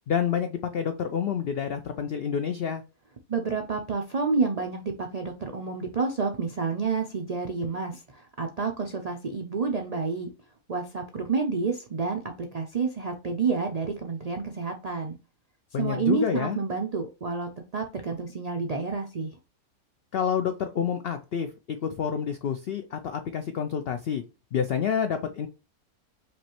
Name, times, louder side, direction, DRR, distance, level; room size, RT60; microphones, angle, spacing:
voice 1, 0.1-2.8 15.7-16.6 20.1-21.5 21.8-24.2 24.5-25.5, left 7 dB, 80° left, 8 dB, 0.5 m, -28 dB
voice 2, 3.3-10.3 10.7-15.2 15.8-19.3, right 4 dB, 70° right, 4 dB, 0.3 m, -29 dB
5.0 x 3.1 x 2.9 m, 0.30 s
omnidirectional pair, 1.6 m